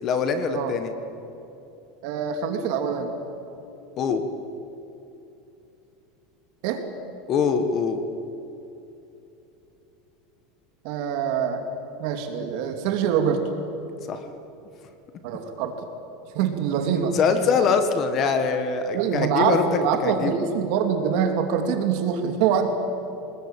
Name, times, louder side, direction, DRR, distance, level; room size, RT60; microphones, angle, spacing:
voice 1, 0.0-0.9 4.0-4.2 7.3-8.0 14.1-14.2 17.1-19.6 20.0-20.3, left 5 dB, 30° left, 8 dB, 1.6 m, -23 dB
voice 2, 2.0-3.1 6.6-6.8 10.8-11.6 12.0-13.5 15.2-15.7 16.3-17.1 18.9-22.7, right 7 dB, 55° right, 5 dB, 2.7 m, -24 dB
25.0 x 20.5 x 9.0 m, 2.9 s
supercardioid pair, 160°, 0 cm